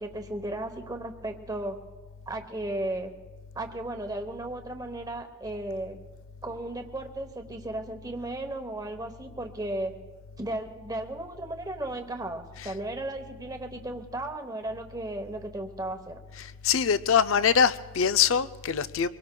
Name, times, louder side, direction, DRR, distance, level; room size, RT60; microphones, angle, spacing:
voice 1, 0.0-1.8 2.3-3.1 3.5-6.0 6.4-9.9 10.4-16.2, right 1 dB, 15° right, 5 dB, 0.9 m, -35 dB
voice 2, 16.4-19.1, left 7 dB, 60° left, 12 dB, 0.5 m, -23 dB
24.5 x 21.5 x 2.2 m, 1.4 s
head